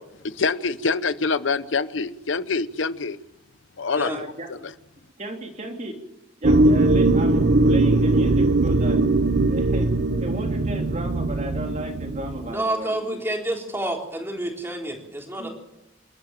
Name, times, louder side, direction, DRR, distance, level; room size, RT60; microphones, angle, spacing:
voice 1, 0.2-3.2 3.8-4.6, left 4 dB, 75° left, 0.9 m, -25 dB
voice 2, 4.0-4.5 5.2-5.9 6.4-9.9 10.2-13.2 15.4-15.5, right 1 dB, 40° right, 3.4 m, -34 dB
sound 1, 6.4-12.5, right 2 dB, 55° right, 0.9 m, -20 dB
voice 3, 12.5-15.5, right 1 dB, 10° right, 3.7 m, -29 dB
28.0 x 13.0 x 7.5 m
head